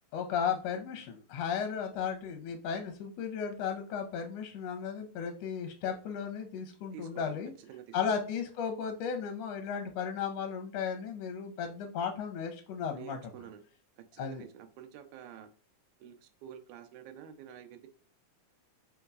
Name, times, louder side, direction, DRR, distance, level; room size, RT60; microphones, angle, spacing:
voice 1, 0.1-7.5 7.9-13.2 14.2-14.4, left 7 dB, 75° left, 5 dB, 1.6 m, -35 dB
voice 2, 6.9-7.3 7.6-8.2 13.0-13.6 14.0-15.5 16.0-17.9, right 9 dB, 85° right, 8 dB, 2.1 m, -49 dB
4.4 x 3.9 x 2.3 m, 0.40 s
omnidirectional pair, 3.4 m